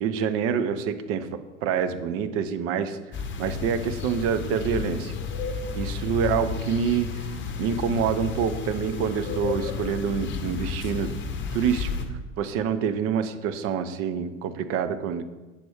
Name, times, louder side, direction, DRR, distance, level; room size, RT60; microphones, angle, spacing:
voice 1, 0.0-3.0 3.4-5.2 5.7-7.1 7.6-11.1 11.5-11.9 12.4-15.2, right 7 dB, 40° right, 11 dB, 0.6 m, -26 dB
sound 1, 3.1-12.0, left 5 dB, 30° left, 1.0 m, -32 dB
8.4 x 5.9 x 3.5 m, 1.2 s
hypercardioid pair, 85°, 38 cm